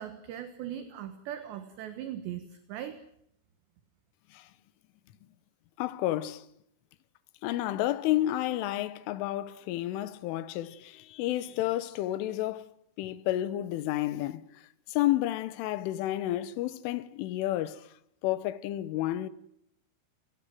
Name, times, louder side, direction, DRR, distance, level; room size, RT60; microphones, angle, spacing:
voice 1, 0.0-3.0, right 10 dB, 65° right, 3.3 m, -39 dB
voice 2, 5.8-6.5 7.4-12.7 13.0-17.9 18.2-19.3, left 14 dB, 75° left, 3.5 m, -31 dB
29.0 x 18.5 x 7.8 m
omnidirectional pair, 6.0 m